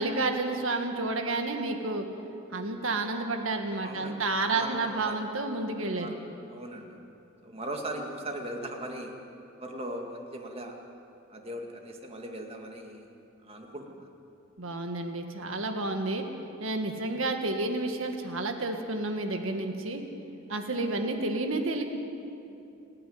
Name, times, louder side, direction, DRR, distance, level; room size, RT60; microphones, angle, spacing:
voice 1, 0.0-2.1 2.5-6.1 14.6-16.2 16.6-20.0 20.5-21.8, right 2 dB, 75° right, 5 dB, 1.9 m, -30 dB
voice 2, 3.8-5.2 5.9-6.2 6.5-6.9 7.4-9.1 9.6-10.8 11.3-13.1 13.4-14.1 20.8-20.9, right 1 dB, 30° right, 2 dB, 2.1 m, -39 dB
29.0 x 9.9 x 9.5 m, 2.8 s
head